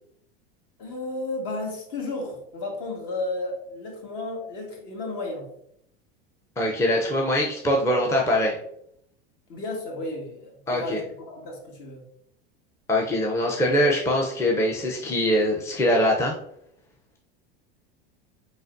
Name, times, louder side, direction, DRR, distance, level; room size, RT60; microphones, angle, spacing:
voice 1, 0.8-5.5 9.5-12.0, left 2 dB, 55° left, 0 dB, 1.7 m, -33 dB
voice 2, 6.6-8.6 10.7-11.0 12.9-16.4, left 1 dB, 10° left, 0 dB, 0.6 m, -23 dB
4.4 x 4.0 x 2.6 m, 0.71 s
hypercardioid pair, 105°, 30 cm